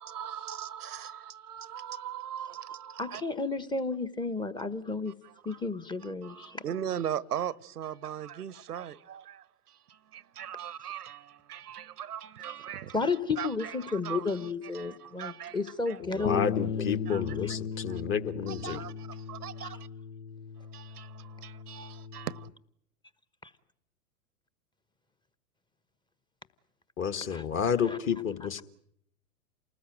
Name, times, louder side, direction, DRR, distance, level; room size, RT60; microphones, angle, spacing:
voice 1, 0.0-3.2 5.2-5.6 6.0-13.1 13.4-14.5 14.7-16.3 17.1-17.4 17.9-18.0 18.5-19.9 20.7-22.5, right 10 dB, 80° right, 1.0 m, -39 dB
voice 2, 3.0-5.1 5.4-6.6 12.9-16.5 16.8-17.0 17.4-17.5 19.6-19.7 23.4-23.5 27.3-27.4 27.9-28.0, left 4 dB, 10° left, 1.1 m, -32 dB
voice 3, 16.0-18.8 27.0-28.6, left 7 dB, 25° left, 1.6 m, -30 dB
Bass guitar, 16.3-22.5, left 7 dB, 65° left, 1.0 m, -37 dB
28.5 x 19.5 x 9.1 m
hypercardioid pair, 105°, 45 cm